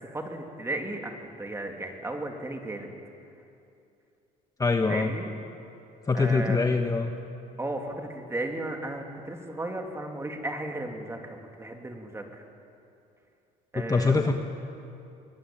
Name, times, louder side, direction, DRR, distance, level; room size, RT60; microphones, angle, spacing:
voice 1, 0.0-2.9 4.9-5.3 6.1-6.6 7.6-12.4 13.7-14.3, right 1 dB, 15° right, 3 dB, 2.9 m, -35 dB
voice 2, 4.6-5.1 6.1-7.1 13.7-14.3, left 4 dB, 20° left, 5 dB, 1.2 m, -24 dB
23.0 x 19.0 x 9.1 m, 2.7 s
cardioid pair, 110°, 17 cm